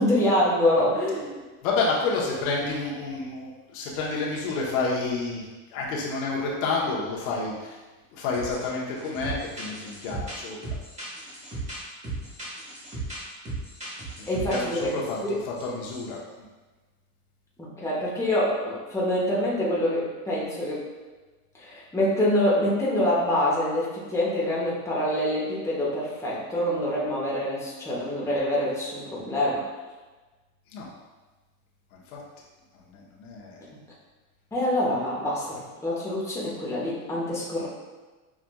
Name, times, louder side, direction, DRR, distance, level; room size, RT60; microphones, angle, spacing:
voice 1, 0.0-1.4 14.3-14.9 15.2-15.4 17.6-20.9 21.5-29.7 33.7-33.8 34.5-37.7, left 1 dB, 5° left, -6 dB, 0.9 m, -26 dB
voice 2, 1.6-5.5 5.7-7.8 8.1-10.6 14.3-16.2 30.7-30.9 31.9-32.2 32.7-33.6, left 3 dB, 80° left, -3 dB, 1.0 m, -29 dB
sound 1, 8.3-8.7 9.0-15.2 15.6-15.7 15.9-16.1, right 2 dB, 15° right, 1.3 m, -36 dB
5.8 x 2.4 x 2.2 m, 1.3 s
supercardioid pair, 120°, 41 cm